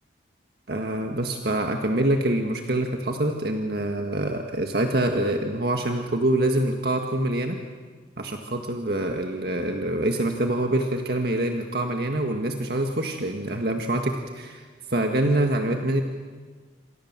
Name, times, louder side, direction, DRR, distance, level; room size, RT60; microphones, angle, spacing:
voice 1, 0.7-7.6 8.2-16.0, right 1 dB, 55° right, 3 dB, 1.9 m, -25 dB
28.0 x 27.0 x 7.6 m, 1.5 s
head